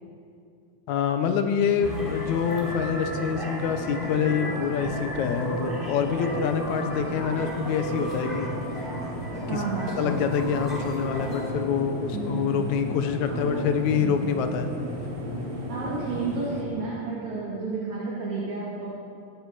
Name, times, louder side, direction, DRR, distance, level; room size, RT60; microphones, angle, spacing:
voice 1, 0.9-8.5 9.5-9.6 10.0-14.7, left 7 dB, 85° left, 7 dB, 2.3 m, -26 dB
sound 1, 1.8-11.5, right 1 dB, 15° left, 4.0 m, -35 dB
sound 2, 1.8-16.6, equal, 40° right, 2.8 m, -35 dB
voice 2, 9.5-10.2 12.1-12.6 13.3-13.7 13.9-14.3 15.7-18.9, right 4 dB, 70° right, -7 dB, 3.8 m, -32 dB
22.0 x 11.5 x 4.9 m, 2.5 s
omnidirectional pair, 3.3 m